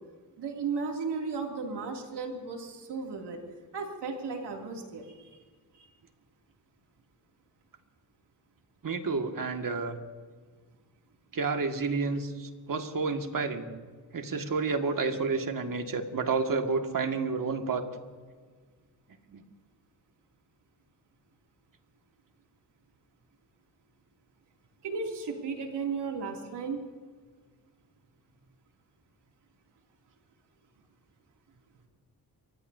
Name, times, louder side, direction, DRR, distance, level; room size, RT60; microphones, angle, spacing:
voice 1, 0.4-3.4 3.7-5.4 5.7-5.9 24.8-26.8, right 4 dB, 85° right, 1 dB, 2.8 m, -35 dB
voice 2, 8.8-10.0 11.3-13.7 14.1-17.8 19.3-19.4, right 4 dB, 55° right, 4 dB, 2.0 m, -30 dB
29.5 x 15.5 x 2.8 m, 1.5 s
cardioid pair, 60°, 40 cm